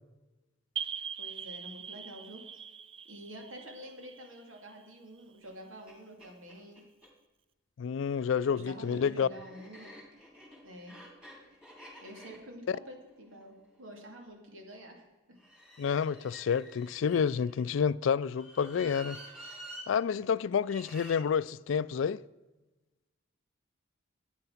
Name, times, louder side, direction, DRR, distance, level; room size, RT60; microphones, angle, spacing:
sound 1, 0.8-5.2, right 8 dB, 25° right, 0.4 m, -42 dB
voice 1, 1.2-2.4 3.0-6.8 8.4-10.0 10.6-11.0 12.0-15.4, equal, 85° right, 2.5 m, -48 dB
sound 2, 5.4-5.5 5.9-6.0 6.2-7.1 8.0-14.2 15.4-17.6 18.3-19.9 20.6-21.2, right 1 dB, 5° right, 2.8 m, -50 dB
voice 2, 7.8-9.3 12.7-12.8 15.8-19.2 19.9-22.2, left 6 dB, 70° left, 0.3 m, -29 dB
12.0 x 9.0 x 5.8 m
head